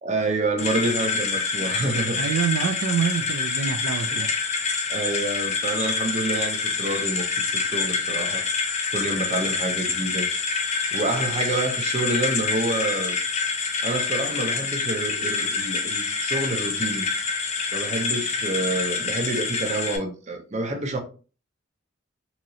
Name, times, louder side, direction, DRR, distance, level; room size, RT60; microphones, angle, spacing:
voice 1, 0.0-2.2 4.1-4.3 4.9-8.4 8.9-10.3 10.9-13.2 13.8-17.1 17.7-21.0, right 2 dB, 35° right, 0.5 m, -28 dB
sound 1, 0.6-20.0, left 4 dB, 35° left, 0.4 m, -27 dB
voice 2, 2.2-4.3, right 7 dB, 85° right, 0.3 m, -26 dB
2.9 x 2.7 x 2.6 m
head